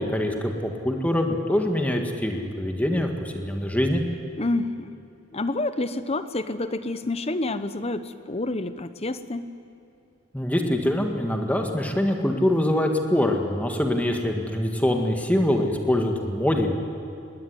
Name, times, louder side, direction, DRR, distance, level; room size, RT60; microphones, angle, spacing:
voice 1, 0.0-4.0 10.3-16.8, left 1 dB, 10° left, 3 dB, 1.8 m, -24 dB
voice 2, 4.4-4.9 5.3-9.5, left 2 dB, 30° left, 12 dB, 0.9 m, -28 dB
21.0 x 18.0 x 9.7 m, 2.6 s
head